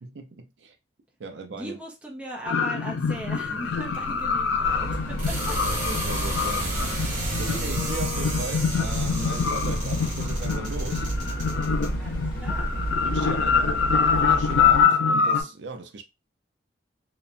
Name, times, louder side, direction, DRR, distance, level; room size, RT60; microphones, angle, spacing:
voice 1, 0.0-0.8 1.2-1.8 5.8-6.7 7.4-11.1 13.0-13.8 14.1-16.0, right 3 dB, 70° right, 0.5 m, -37 dB
voice 2, 1.5-5.6 12.0-12.8 13.2-13.6, equal, 5° right, 0.6 m, -39 dB
sound 1, 2.5-15.4, left 6 dB, 75° left, 0.4 m, -25 dB
sound 2, 3.0-13.1, right 1 dB, 40° right, 1.1 m, -34 dB
sound 3, 4.6-14.8, right 1 dB, 45° left, 1.0 m, -31 dB
2.9 x 2.1 x 2.5 m
head